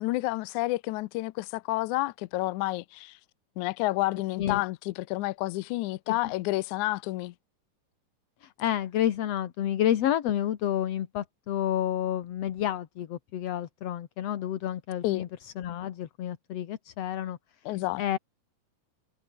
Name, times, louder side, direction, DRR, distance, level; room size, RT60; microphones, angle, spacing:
voice 1, 0.0-3.2 3.6-7.3 15.0-15.3 17.7-18.2, left 19 dB, 80° left, 1.9 m, -30 dB
voice 2, 8.4-17.4 18.0-18.2, left 11 dB, 60° left, 2.1 m, -30 dB
omnidirectional pair, 3.8 m